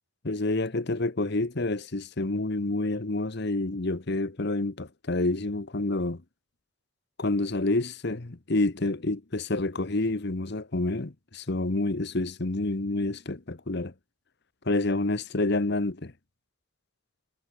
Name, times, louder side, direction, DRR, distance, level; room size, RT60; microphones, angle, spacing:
voice 1, 0.2-6.2 7.2-13.9 14.6-16.1, left 2 dB, 55° left, 1.2 m, -28 dB
head